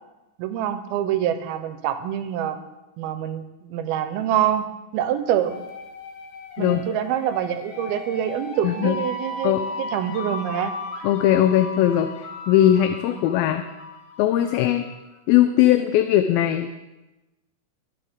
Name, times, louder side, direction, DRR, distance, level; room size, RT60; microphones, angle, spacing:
voice 1, 0.4-2.6 3.0-4.6 4.9-5.6 6.6-10.7 12.9-13.0, right 10 dB, 85° right, 9 dB, 2.7 m, -25 dB
sound 1, 5.4-15.1, left 3 dB, 60° left, 2.6 m, -36 dB
voice 2, 8.6-9.0 9.4-9.6 11.0-13.6 14.2-14.9 15.3-16.7, left 12 dB, 80° left, 8 dB, 2.3 m, -19 dB
22.5 x 8.4 x 3.6 m, 1.0 s
omnidirectional pair, 4.4 m